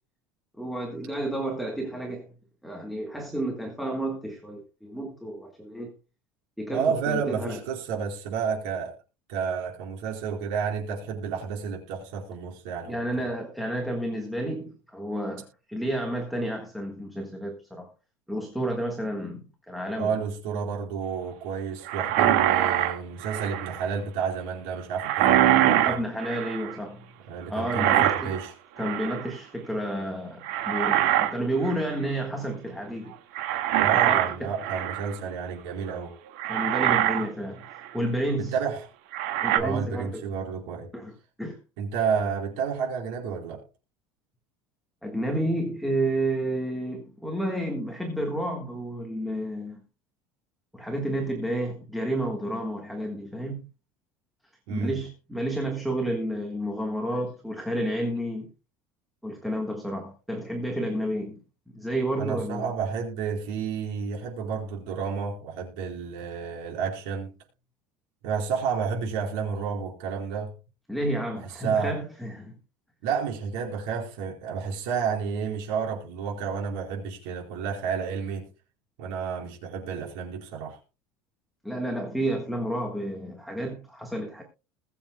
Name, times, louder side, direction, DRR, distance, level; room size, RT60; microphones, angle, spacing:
voice 1, 0.6-2.3 2.6-5.9 6.6-7.6 12.8-17.9 18.3-20.1 25.7-27.0 27.5-28.3 28.8-33.1 34.0-34.5 36.5-37.6 37.9-38.5 39.4-40.2 40.9-41.6 45.0-49.8 50.7-53.6 54.7-58.5 59.2-61.4 61.7-62.7 70.9-72.6 81.6-84.4, right 1 dB, ahead, 1.5 m, -31 dB
voice 2, 6.7-9.0 9.3-12.9 20.0-26.0 27.3-28.5 33.8-36.2 38.4-38.9 39.6-40.9 41.8-43.6 54.7-55.0 62.2-67.3 68.2-70.5 71.6-72.0 73.0-78.5 79.0-80.8, right 6 dB, 75° right, 4.7 m, -30 dB
sound 1, 21.9-23.8 25.0-26.7 27.7-28.5 28.8-29.3 30.4-31.3 31.6-31.9 33.4-35.2 35.9-36.0 36.4-37.3 37.7-37.9 39.1-39.6, right 12 dB, 90° right, 1.8 m, -24 dB
21.5 x 7.2 x 2.2 m
cardioid pair, 170°, 6 cm